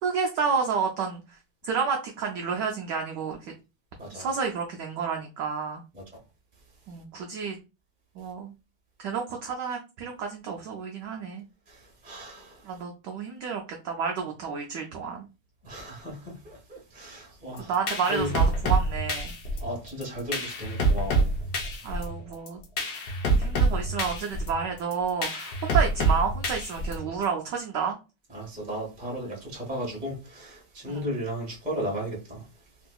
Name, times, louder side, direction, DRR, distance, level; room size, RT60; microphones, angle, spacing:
voice 1, 0.0-1.4 1.6-3.4 4.1-5.8 6.9-7.6 8.2-8.5 9.0-11.4 12.6-15.3 17.7-19.3 21.8-22.6 23.3-28.0 30.9-31.0, right 6 dB, 80° right, 0.9 m, -30 dB
voice 2, 11.7-12.6 15.6-17.7 18.1-18.4 19.6-21.3 28.3-32.5, equal, 5° right, 0.6 m, -35 dB
sound 1, 17.6-27.2, right 2 dB, 65° left, 1.0 m, -26 dB
3.7 x 2.6 x 2.2 m
omnidirectional pair, 2.4 m